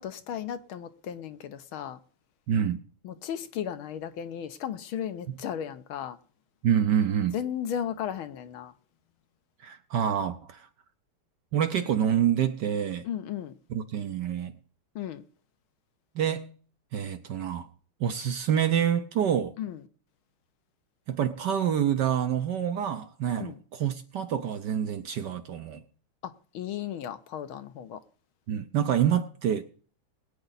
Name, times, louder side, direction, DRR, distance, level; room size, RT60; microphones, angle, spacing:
voice 1, 0.0-2.0 3.0-6.2 7.3-8.7 13.0-13.5 14.9-15.2 19.6-19.8 23.4-23.6 26.2-28.0, left 9 dB, 75° left, 1.6 m, -35 dB
voice 2, 2.5-2.8 6.6-7.3 9.6-10.7 11.5-13.1 13.7-14.5 16.1-16.5 16.9-17.7 18.0-19.5 21.1-25.8 28.5-29.6, right 9 dB, 65° right, 1.1 m, -27 dB
21.0 x 9.1 x 4.0 m
omnidirectional pair, 2.4 m